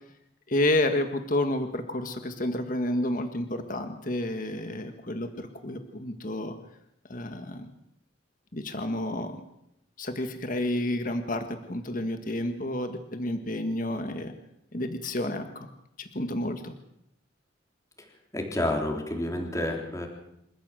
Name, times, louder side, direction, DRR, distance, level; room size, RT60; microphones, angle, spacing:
voice 1, 0.5-6.5 7.1-7.7 8.5-9.4 10.0-14.3 14.7-15.7 16.0-16.7, left 1 dB, 45° left, 6 dB, 1.7 m, -30 dB
voice 2, 18.3-20.1, left 1 dB, 15° left, 2 dB, 3.9 m, -29 dB
28.0 x 14.5 x 7.8 m, 0.78 s
head